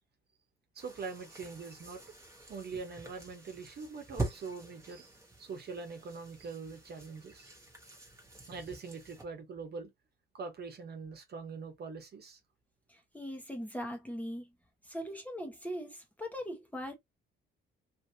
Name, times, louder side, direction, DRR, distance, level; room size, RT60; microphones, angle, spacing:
voice 1, 0.7-2.1 2.5-5.1 5.4-7.5 8.5-9.9 10.3-12.4, right 4 dB, 55° right, 1.2 m, -43 dB
sound 1, 0.8-9.2, right 2 dB, 15° right, 1.3 m, -45 dB
voice 2, 12.9-14.5 14.8-16.9, equal, 5° left, 1.1 m, -40 dB
3.1 x 2.8 x 2.7 m
cardioid pair, 90°, 20 cm